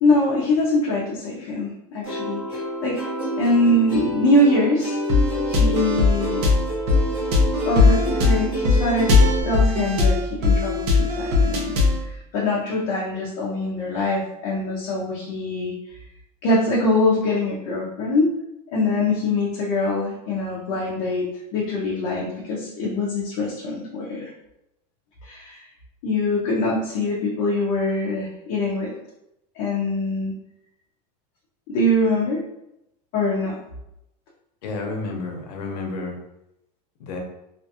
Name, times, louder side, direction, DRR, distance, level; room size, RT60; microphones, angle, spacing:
voice 1, 0.0-3.0 3.4-5.0 5.5-6.5 7.6-11.8 12.0-15.7 16.4-18.3 18.7-24.3 25.2-25.6 26.0-29.0 29.6-30.3 31.7-32.4 33.1-33.6, left 1 dB, 40° left, -5 dB, 0.5 m, -23 dB
Plucked string instrument, 2.0-9.4, right 1 dB, 5° right, 0.9 m, -28 dB
sound 1, 5.1-12.1, left 3 dB, 80° right, 0.7 m, -19 dB
voice 2, 34.6-36.2 37.0-37.2, left 3 dB, 85° left, 2 dB, 0.7 m, -30 dB
2.4 x 2.3 x 2.7 m, 0.85 s
supercardioid pair, 180°, 20 cm